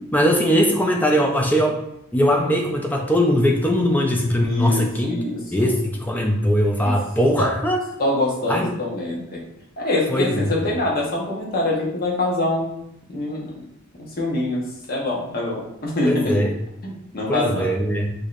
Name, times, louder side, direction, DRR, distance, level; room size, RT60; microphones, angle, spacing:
voice 1, 0.1-1.8 2.1-5.2 5.5-7.8 8.5-8.7 10.1-10.6 16.0-16.5 17.3-18.1, equal, 10° left, 1 dB, 0.5 m, -20 dB
voice 2, 4.4-5.7 6.8-6.9 7.4-7.5 8.0-9.4 9.8-12.8 13.1-13.6 14.0-16.4 16.8-17.7, left 1 dB, 45° left, -3 dB, 0.9 m, -25 dB
4.8 x 2.7 x 2.5 m, 0.77 s
head